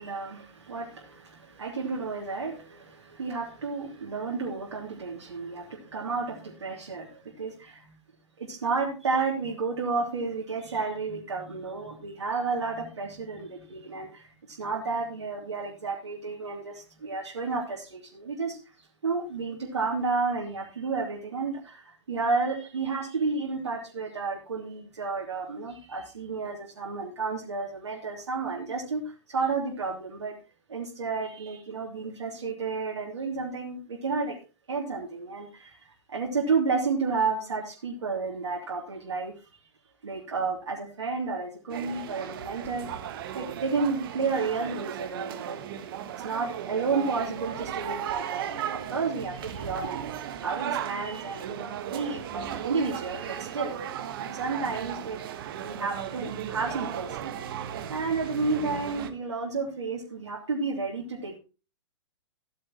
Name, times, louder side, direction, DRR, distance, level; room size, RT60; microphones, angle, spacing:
voice 1, 0.0-7.9 8.4-18.6 19.0-30.4 30.7-34.4 34.7-35.8 36.1-39.3 40.0-43.1 43.3-45.8 46.2-50.0 50.4-53.8 54.2-55.2 55.6-57.3 57.9-61.4, right 4 dB, 70° right, -3 dB, 3.0 m, -31 dB
sound 1, 41.7-59.1, right 9 dB, 50° right, 1.5 m, -36 dB
15.5 x 8.8 x 3.0 m, 0.31 s
figure-of-eight pair, 110°, 15 cm